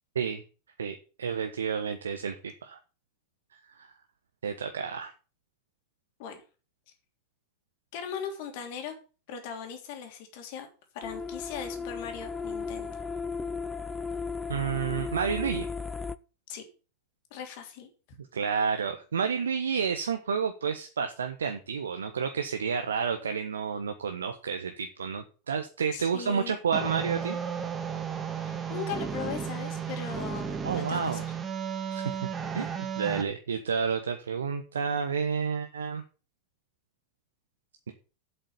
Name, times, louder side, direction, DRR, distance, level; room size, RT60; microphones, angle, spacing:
voice 1, 0.8-2.8 3.7-3.9 4.4-5.1 14.5-15.7 18.3-27.4 30.6-31.2 31.9-32.2 32.5-32.7 33.0-36.0, right 6 dB, 70° right, 7 dB, 1.1 m, -30 dB
voice 2, 7.9-8.9 9.3-10.7 10.9-13.0 16.5-16.6 17.3-17.9 25.9-26.6 28.3-31.2, left 7 dB, 50° left, 4 dB, 3.2 m, -39 dB
sound 1, 11.0-16.2, left 5 dB, 15° left, 0.6 m, -35 dB
sound 2, 26.7-33.2, right 7 dB, 20° right, 2.2 m, -34 dB
8.2 x 8.0 x 7.2 m, 0.35 s
figure-of-eight pair, 85°, 0 cm